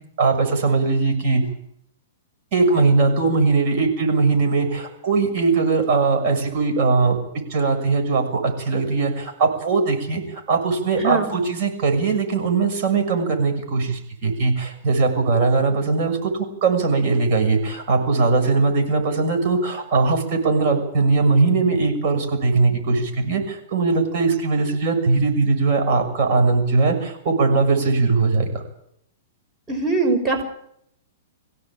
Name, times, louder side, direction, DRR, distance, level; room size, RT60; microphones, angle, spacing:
voice 1, 0.2-1.4 2.5-7.2 7.5-10.2 10.5-16.3 16.6-28.6, right 4 dB, 45° right, 4 dB, 6.6 m, -20 dB
voice 2, 29.7-30.4, right 3 dB, 15° right, 3 dB, 5.5 m, -21 dB
24.0 x 16.5 x 8.9 m, 0.73 s
hypercardioid pair, 150°, 0 cm